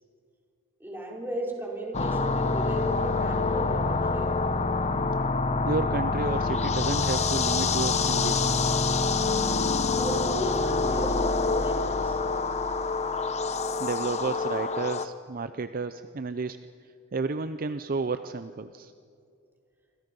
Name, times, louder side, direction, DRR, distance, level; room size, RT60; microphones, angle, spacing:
voice 1, 0.8-4.4 10.0-12.2, right 1 dB, 10° right, -2 dB, 4.3 m, -35 dB
sound 1, 1.9-15.1, left 4 dB, 30° left, 0.8 m, -26 dB
voice 2, 5.7-8.6 13.8-16.6 17.1-18.9, right 4 dB, 40° right, 11 dB, 0.5 m, -31 dB
28.0 x 25.5 x 5.4 m, 2.4 s
head